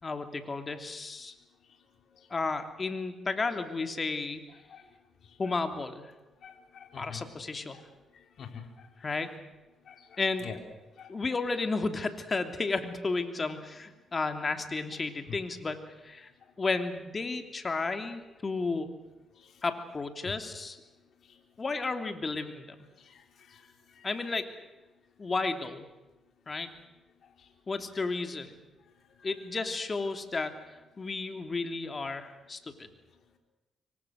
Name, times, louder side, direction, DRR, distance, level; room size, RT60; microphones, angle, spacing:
voice 1, 0.0-1.3 2.3-4.4 5.4-6.1 7.0-7.8 9.0-9.3 10.2-10.5 11.1-16.3 16.6-18.9 19.6-20.8 21.6-22.7 24.0-24.5 25.2-25.9 26.5-26.7 27.7-28.6 29.2-30.6 31.0-32.9, left 3 dB, 35° left, 7 dB, 2.9 m, -33 dB
voice 2, 6.4-7.3 7.7-7.8 8.4-9.2 9.9-10.6 11.0-11.1 19.4-19.5 23.0-23.2 23.5-24.1, left 7 dB, 65° left, 4 dB, 3.8 m, -47 dB
26.0 x 24.0 x 6.5 m, 1.1 s
cardioid pair, 85°, 0 cm